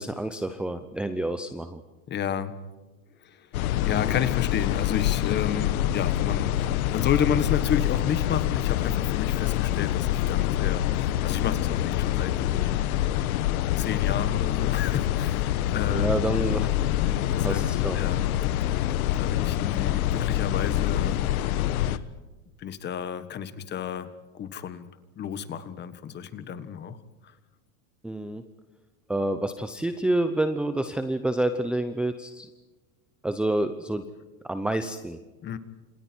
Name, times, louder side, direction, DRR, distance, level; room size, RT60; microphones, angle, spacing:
voice 1, 0.0-1.8 15.9-16.7 17.0-18.0 28.0-28.4 29.1-32.5 33.2-34.1 34.4-35.2, right 1 dB, ahead, 7 dB, 0.7 m, -28 dB
voice 2, 2.1-2.6 3.2-12.9 13.8-16.3 17.0-17.6 17.9-18.2 18.6-21.2 21.8-22.0 22.6-24.9 25.2-27.0 27.2-27.3 35.4-35.6, left 8 dB, 25° left, 13 dB, 1.5 m, -31 dB
sound 1, 3.5-22.0, left 13 dB, 80° left, 1.4 m, -26 dB
29.5 x 27.0 x 4.6 m, 1.2 s
supercardioid pair, 155°, 42 cm